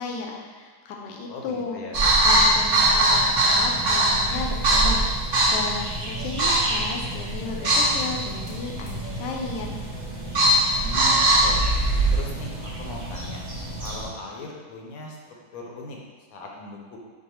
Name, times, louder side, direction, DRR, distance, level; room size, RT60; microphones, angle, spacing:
voice 1, 0.0-1.8 2.2-5.0 5.5-9.7, left 4 dB, 85° left, 0 dB, 1.3 m, -34 dB
voice 2, 1.3-2.1 10.8-11.6 12.1-13.4 13.8-15.2 15.5-16.0 16.3-17.0, left 2 dB, 65° left, 0 dB, 1.0 m, -38 dB
sound 1, 1.9-14.0, right 1 dB, 40° right, 0.7 m, -22 dB
4.6 x 2.5 x 4.3 m, 1.4 s
omnidirectional pair, 1.9 m